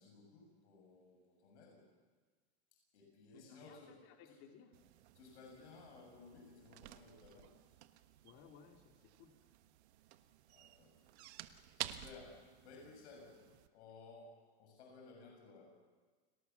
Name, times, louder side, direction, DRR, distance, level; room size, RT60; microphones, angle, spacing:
voice 1, 0.0-1.9 2.7-4.4 5.1-7.5 10.5-11.0 11.5-13.4 13.7-15.7, left 3 dB, 80° left, 1 dB, 7.1 m, -58 dB
voice 2, 3.3-4.7 8.2-9.4, left 7 dB, 45° left, 3 dB, 3.0 m, -60 dB
sound 1, 4.7-13.7, right 13 dB, 75° right, 1.4 m, -52 dB
29.5 x 18.5 x 7.1 m, 1.4 s
supercardioid pair, 155°, 33 cm